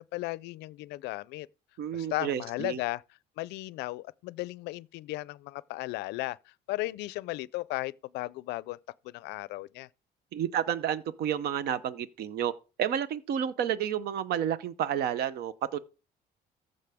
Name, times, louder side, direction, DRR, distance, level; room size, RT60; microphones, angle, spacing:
voice 1, 0.1-1.5 1.9-3.0 3.4-8.8 9.0-9.9, left 19 dB, 85° left, 0.4 m, -35 dB
voice 2, 1.8-2.8 10.3-12.5 12.8-15.8, right 9 dB, 70° right, 0.7 m, -30 dB
14.5 x 5.3 x 3.5 m
cardioid pair, 110°, 17 cm